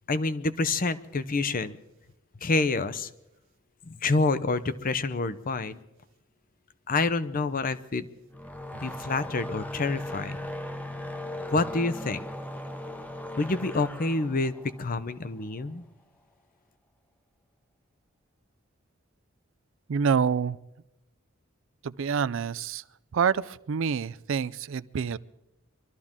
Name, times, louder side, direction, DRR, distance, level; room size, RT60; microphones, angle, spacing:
voice 1, 0.1-1.8 2.4-3.1 3.9-5.8 6.9-8.1 8.7-10.4 11.5-12.3 13.4-15.8, left 3 dB, 45° left, 13 dB, 0.7 m, -27 dB
sound 1, 8.3-15.6, left 1 dB, 5° left, 0.8 m, -38 dB
voice 2, 19.9-20.6 21.8-22.8 23.1-25.2, right 6 dB, 65° right, 17 dB, 0.4 m, -27 dB
23.5 x 13.0 x 3.7 m, 0.88 s
head